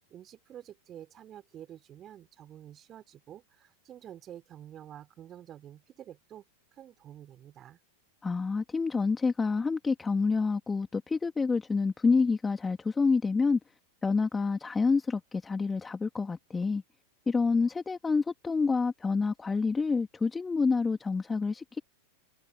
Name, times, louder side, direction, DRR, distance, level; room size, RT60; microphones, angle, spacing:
voice 1, 0.1-6.5 6.7-7.8, right 11 dB, 30° right, 4.1 m, -49 dB
voice 2, 8.2-13.6 14.0-16.8 17.3-21.8, left 4 dB, 15° left, 2.9 m, -28 dB
figure-of-eight pair, 90°, 0 cm